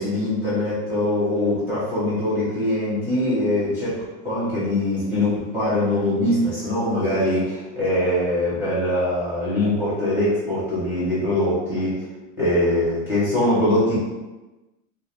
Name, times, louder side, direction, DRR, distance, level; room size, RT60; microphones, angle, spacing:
voice 1, 0.0-4.0 4.2-11.9 12.4-14.0, left 1 dB, 5° right, -12 dB, 0.8 m, -22 dB
2.4 x 2.3 x 3.2 m, 1.1 s
supercardioid pair, 175°, 43 cm